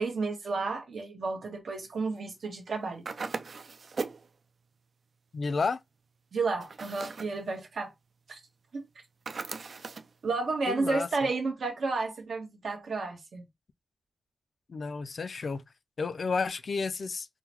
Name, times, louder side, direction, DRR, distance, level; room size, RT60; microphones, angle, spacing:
voice 1, 0.0-3.0 6.3-7.9 8.3-8.4 8.7-8.9 10.2-13.4, right 3 dB, 75° right, 1.1 m, -31 dB
sound 1, 3.1-4.3 6.6-7.4 9.3-10.1, right 4 dB, 60° right, 0.3 m, -38 dB
voice 2, 5.3-5.8 10.7-11.1 14.7-15.6 16.0-17.3, left 4 dB, 60° left, 0.3 m, -31 dB
3.7 x 2.2 x 2.9 m
wide cardioid pair, 105°, 0 cm